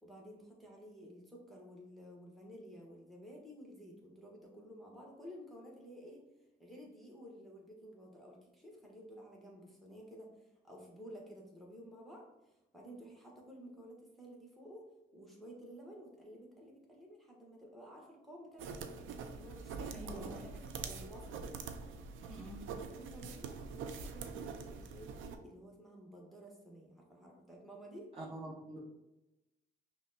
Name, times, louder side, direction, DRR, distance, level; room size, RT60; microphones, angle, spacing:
voice 1, 0.0-6.2 6.6-14.8 15.1-21.6 22.9-28.1, equal, ahead, -2 dB, 1.0 m, -53 dB
sound 1, 18.6-25.4, right 5 dB, 80° right, 0.4 m, -44 dB
voice 2, 19.9-20.4 22.3-22.6 28.2-28.8, right 1 dB, 30° right, -7 dB, 1.0 m, -46 dB
5.5 x 2.1 x 2.7 m, 0.95 s
cardioid pair, 90°, 20 cm